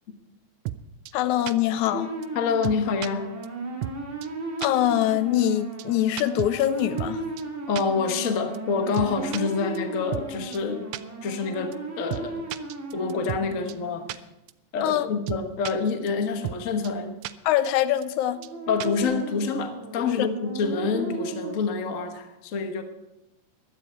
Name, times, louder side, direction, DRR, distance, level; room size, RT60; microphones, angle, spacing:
sound 1, 0.7-0.8 1.1-1.2 1.5-1.6 1.9-2.0 2.2-2.3 2.6-3.1 3.4-3.5 3.8-4.0 4.2-4.3 4.6-4.7 5.0-5.1 5.4-5.5 5.8-5.9 6.2-7.1 7.4-7.5 7.8-7.9 8.2-8.3 8.5-8.6 8.9-9.4 9.7-9.8 10.1-10.3 10.5-10.6 10.9-11.0 11.3-11.4 11.7-11.8 12.1-12.2 12.5-13.4 13.7-13.8 14.1-14.2 14.5-14.6 14.9-15.0 15.3-15.7 16.1-16.2 16.4-16.6 16.8-16.9 17.2-17.3 17.6-17.7 18.0-18.1 18.4-18.5 18.8-19.0, right 15 dB, 85° right, 1.9 m, -33 dB
voice 1, 1.1-2.1 4.6-7.2 14.8-15.1 17.4-18.4 20.0-20.3, left 12 dB, 85° left, 14 dB, 2.0 m, -23 dB
sound 2, 1.8-14.2 18.3-21.6, right 3 dB, 25° right, 2.7 m, -36 dB
voice 2, 2.3-3.3 7.7-10.8 11.2-12.4 12.9-14.0 14.7-17.2 18.7-22.8, left 5 dB, 65° left, 6 dB, 0.8 m, -27 dB
16.0 x 11.5 x 4.4 m, 0.94 s
omnidirectional pair, 3.3 m